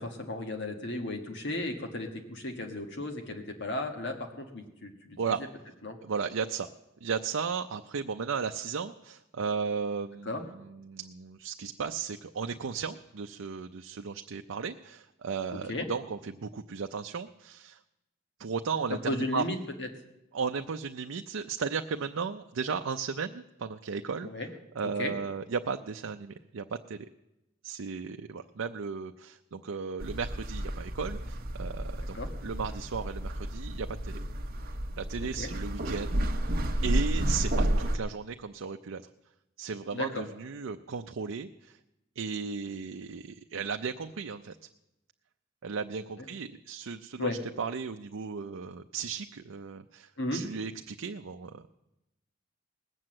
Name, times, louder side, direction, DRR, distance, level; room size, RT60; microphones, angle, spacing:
voice 1, 0.0-5.3 5.8-6.0 10.2-10.4 15.5-15.8 18.9-19.9 24.2-24.5 25.0-25.1 32.0-32.3 35.4-35.5 39.9-40.3 47.2-47.4 50.2-50.4, left 2 dB, 60° left, 4 dB, 1.5 m, -35 dB
voice 2, 6.0-6.7 7.0-17.8 18.4-19.4 20.3-24.3 24.8-27.1 27.6-34.2 35.0-36.2 36.8-39.0 39.6-41.8 42.2-44.6 45.6-47.3 47.6-51.7, right 5 dB, 80° right, 5 dB, 0.5 m, -35 dB
sound 1, 30.0-38.0, right 1 dB, 50° right, 1.0 m, -31 dB
19.5 x 7.8 x 7.6 m, 0.93 s
head